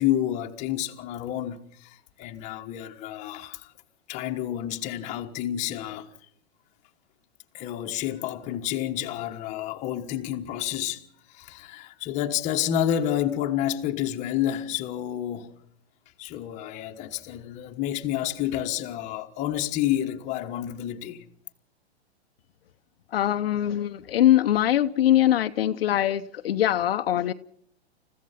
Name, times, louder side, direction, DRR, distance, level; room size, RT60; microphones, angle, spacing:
voice 1, 0.0-3.7 4.1-6.1 7.5-11.0 11.3-15.5 16.2-21.2, left 11 dB, 20° left, 1.4 m, -29 dB
voice 2, 23.1-27.3, left 12 dB, 60° left, 0.9 m, -22 dB
29.0 x 15.5 x 5.8 m
hypercardioid pair, 155°, 33 cm